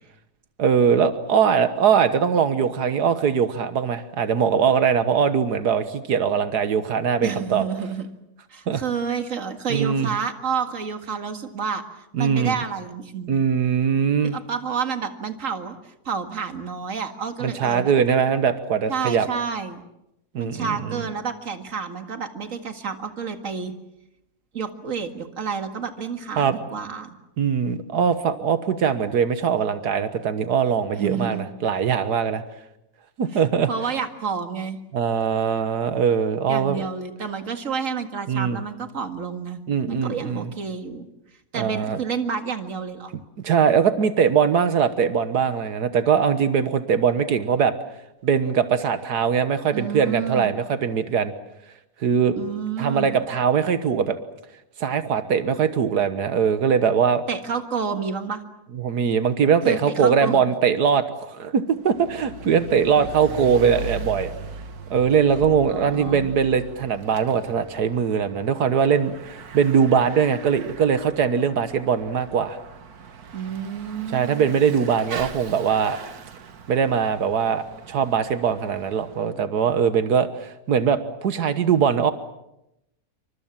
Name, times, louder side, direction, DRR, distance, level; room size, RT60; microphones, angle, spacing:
voice 1, 0.6-7.6 8.7-8.8 9.7-10.1 12.1-12.6 13.3-14.4 17.4-19.3 20.4-21.0 26.4-26.6 27.4-32.4 33.2-33.7 34.9-36.8 38.3-38.6 39.7-40.5 41.5-42.0 43.4-47.7 48.2-51.3 52.0-52.4 52.8-54.2 54.8-57.2 58.8-64.3 64.9-72.6 74.1-76.0 76.7-82.1, right 7 dB, 90° right, 10 dB, 1.8 m, -21 dB
voice 2, 7.2-8.1 8.5-11.8 12.1-13.3 14.2-17.9 18.9-19.8 20.4-23.7 24.5-27.1 31.0-31.4 33.3-33.4 33.7-34.8 36.5-39.6 39.9-41.1 41.5-43.1 49.7-50.5 52.4-53.2 57.3-58.4 59.6-60.4 65.7-66.3 73.3-74.6, right 6 dB, 55° right, 7 dB, 2.3 m, -29 dB
Bicycle / Mechanisms, 61.7-79.3, right 5 dB, 70° right, 1.9 m, -40 dB
28.0 x 25.0 x 7.4 m, 0.87 s
omnidirectional pair, 1.6 m